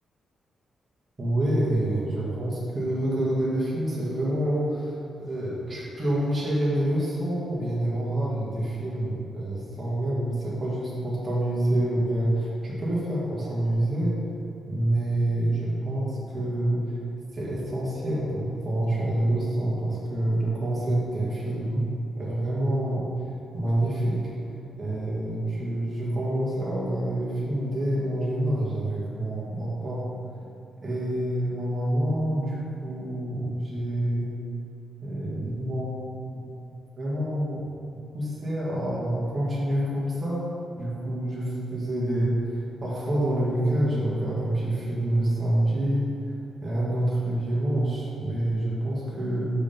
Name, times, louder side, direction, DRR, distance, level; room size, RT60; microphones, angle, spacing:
voice 1, 1.2-14.2 14.7-17.0 17.3-21.9 22.2-23.1 23.5-24.2 24.8-30.0 30.8-34.3 35.0-36.0 36.3-36.5 37.0-37.6 38.1-40.5 40.7-46.1 46.6-49.5, right 1 dB, 25° right, -7 dB, 1.5 m, -27 dB
5.7 x 4.9 x 5.1 m, 2.7 s
wide cardioid pair, 145°, 0 cm